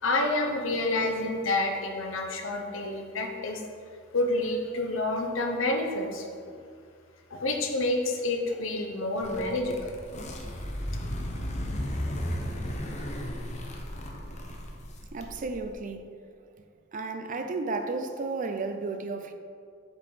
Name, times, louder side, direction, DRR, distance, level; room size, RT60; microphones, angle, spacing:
voice 1, 0.0-3.6 4.1-6.6 7.3-9.9, left 2 dB, 65° left, 3 dB, 0.8 m, -29 dB
sound 1, 9.2-15.7, equal, 35° left, 0.7 m, -35 dB
voice 2, 15.1-16.1 16.9-19.3, right 3 dB, 40° right, 7 dB, 0.4 m, -33 dB
7.2 x 4.0 x 4.9 m, 2.2 s
head